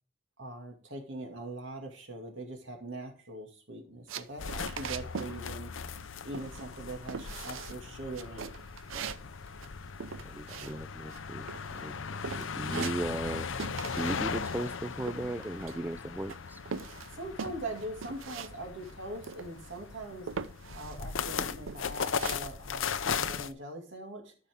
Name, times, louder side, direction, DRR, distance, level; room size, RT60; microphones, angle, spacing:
voice 1, 0.4-5.7 6.2-8.5 17.1-20.3 20.7-24.4, right 1 dB, 70° right, 2.3 m, -42 dB
sound 1, 4.1-5.4 5.6-6.1 6.3-6.8 7.1-7.8 8.1-11.2 11.5-12.0 12.2-13.3 13.6-14.2 14.5-16.0 16.3-18.5 18.8-18.9 19.2-19.8 20.3-21.0 21.4-22.3, right 6 dB, 85° right, 0.6 m, -41 dB
sound 2, 4.4-23.5, left 6 dB, 80° left, 0.6 m, -38 dB
voice 2, 10.2-12.0 12.4-13.5 13.9-16.6, right 1 dB, 10° right, 0.4 m, -37 dB
13.0 x 5.7 x 3.6 m
head